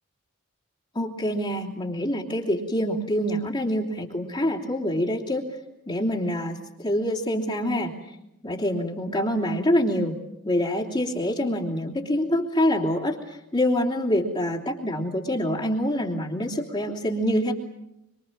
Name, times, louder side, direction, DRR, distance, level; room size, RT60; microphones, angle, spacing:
voice 1, 0.9-5.5 5.9-7.9 8.4-10.2 10.4-17.5, equal, 25° left, -3 dB, 3.3 m, -26 dB
25.5 x 25.0 x 7.5 m, 0.85 s
head